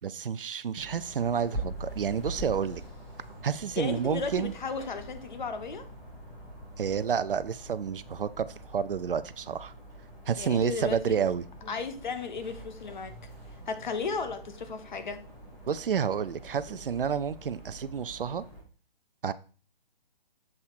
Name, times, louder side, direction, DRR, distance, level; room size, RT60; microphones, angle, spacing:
voice 1, 0.0-2.8 3.4-4.5 6.8-9.7 10.3-11.4 15.7-18.4 19.2-19.3, right 7 dB, 65° right, 0.5 m, -30 dB
sound 1, 0.8-18.6, right 1 dB, 5° left, 0.5 m, -44 dB
voice 2, 3.8-5.8 10.4-11.2 11.6-13.1 13.7-15.2 16.7-16.8, left 4 dB, 50° left, 0.9 m, -35 dB
7.3 x 3.2 x 4.4 m
figure-of-eight pair, 140°, 29 cm